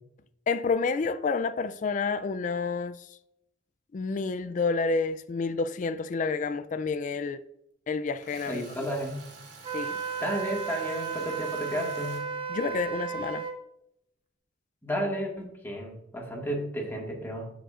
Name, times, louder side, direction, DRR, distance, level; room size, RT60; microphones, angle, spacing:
voice 1, 0.5-3.1 3.9-7.4 7.9-8.6 9.7-10.0 12.5-13.5, left 4 dB, 45° left, 0.3 m, -29 dB
Tools, 8.2-12.2, right 4 dB, 80° right, 2.5 m, -49 dB
voice 2, 8.5-9.2 10.2-12.2 14.8-17.5, equal, 10° left, 1.8 m, -32 dB
Wind instrument woodwind instrument, 9.6-13.6, right 6 dB, 30° right, 0.8 m, -34 dB
12.5 x 5.1 x 2.5 m
head